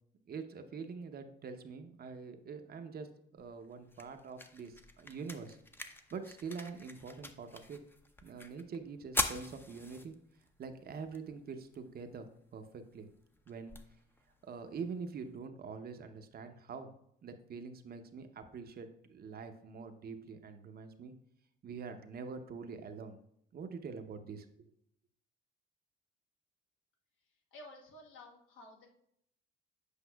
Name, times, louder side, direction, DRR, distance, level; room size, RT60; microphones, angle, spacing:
voice 1, 0.3-5.6 5.9-7.8 8.2-10.1 10.6-13.1 13.5-13.7 14.4-16.9 17.2-21.1 21.6-23.2 23.5-24.7, right 5 dB, 50° right, 7 dB, 0.7 m, -45 dB
sound 1, 3.4-15.4, left 1 dB, 10° left, 0.6 m, -44 dB
voice 2, 27.2-28.9, left 1 dB, 85° left, 1 dB, 1.3 m, -54 dB
8.1 x 5.3 x 2.3 m, 0.72 s
cardioid pair, 90°, 20 cm